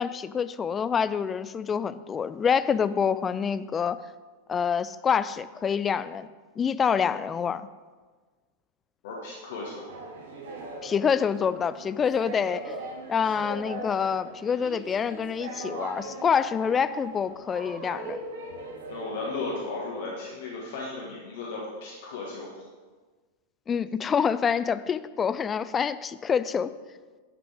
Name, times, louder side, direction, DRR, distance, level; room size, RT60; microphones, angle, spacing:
voice 1, 0.0-4.0 4.5-6.3 6.6-7.7 10.8-12.8 13.1-18.2 23.7-26.7, left 7 dB, 20° left, 14 dB, 0.4 m, -26 dB
voice 2, 9.0-9.9 18.9-22.6, left 3 dB, 55° left, -3 dB, 1.6 m, -35 dB
sound 1, 9.9-19.8, right 2 dB, 60° right, 1.4 m, -40 dB
10.5 x 5.9 x 4.9 m, 1.4 s
figure-of-eight pair, 90°, 0 cm